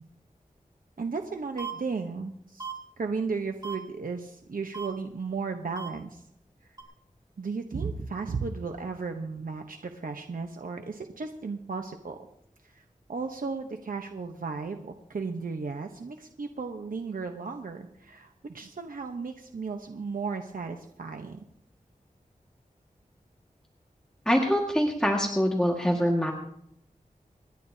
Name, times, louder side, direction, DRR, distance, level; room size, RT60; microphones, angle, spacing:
voice 1, 1.0-2.7 3.0-6.2 6.6-6.8 7.4-12.2 12.6-12.8 13.1-21.4, right 4 dB, 80° right, 4 dB, 1.0 m, -35 dB
sound 1, 1.6-1.7 2.6-2.7 3.6-3.7 4.7-4.9 5.7-5.9 6.8-6.9, right 7 dB, 30° right, 2.5 m, -36 dB
voice 2, 24.3-26.3, equal, 5° left, 0 dB, 1.8 m, -24 dB
27.5 x 10.5 x 2.8 m, 0.73 s
wide cardioid pair, 55°, 14 cm